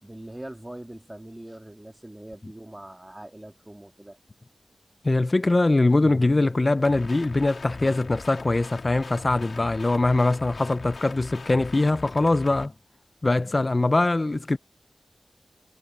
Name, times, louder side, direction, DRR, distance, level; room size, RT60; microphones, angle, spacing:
voice 1, 0.0-4.2, right 1 dB, 15° right, 3.1 m, -42 dB
voice 2, 5.0-12.7 13.2-14.6, left 2 dB, 35° left, 0.6 m, -22 dB
sound 1, 6.8-12.7, left 4 dB, 75° left, 3.3 m, -41 dB
wide cardioid pair, 70°, 0 cm